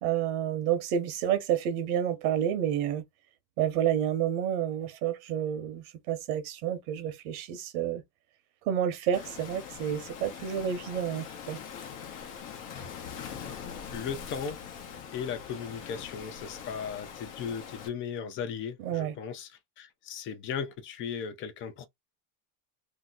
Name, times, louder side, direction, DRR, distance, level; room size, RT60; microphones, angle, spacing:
voice 1, 0.0-3.0 3.6-8.0 8.7-11.6 18.8-19.1, right 10 dB, 80° right, 0.9 m, -29 dB
Waves surf, 9.1-17.9, left 7 dB, 50° left, 0.9 m, -42 dB
voice 2, 13.1-13.4 13.9-14.6 15.1-19.5 19.8-21.9, left 7 dB, 30° left, 0.5 m, -37 dB
2.8 x 2.1 x 3.6 m
cardioid pair, 150°, 42 cm